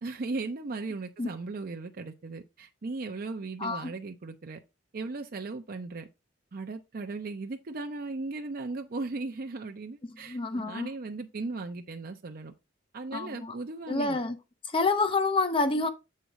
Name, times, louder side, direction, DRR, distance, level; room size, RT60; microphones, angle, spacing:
voice 1, 0.0-4.6 4.9-6.1 6.5-12.5 12.9-14.2, right 3 dB, 50° right, 0.5 m, -37 dB
voice 2, 3.6-3.9 10.2-10.9 13.1-13.6 13.9-14.4 14.6-15.9, left 3 dB, 30° left, 0.6 m, -28 dB
7.5 x 4.0 x 4.6 m
head